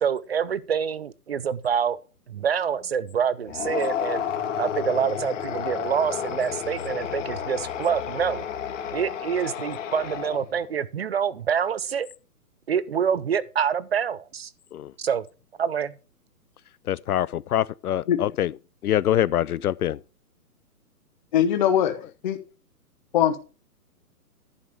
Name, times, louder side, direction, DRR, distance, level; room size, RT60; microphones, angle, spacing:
voice 1, 0.0-2.0 2.3-4.2 4.6-8.5 8.9-12.1 12.7-14.5 15.0-15.3 15.6-16.0, right 7 dB, 40° right, 0.5 m, -26 dB
sound 1, 3.5-10.6, left 8 dB, 50° left, 1.9 m, -31 dB
voice 2, 16.9-18.6 18.8-20.0, left 12 dB, 70° left, 0.6 m, -24 dB
voice 3, 21.3-22.0 22.2-22.4 23.1-23.4, left 10 dB, 30° left, 0.9 m, -20 dB
11.0 x 5.1 x 6.5 m
hypercardioid pair, 160°, 46 cm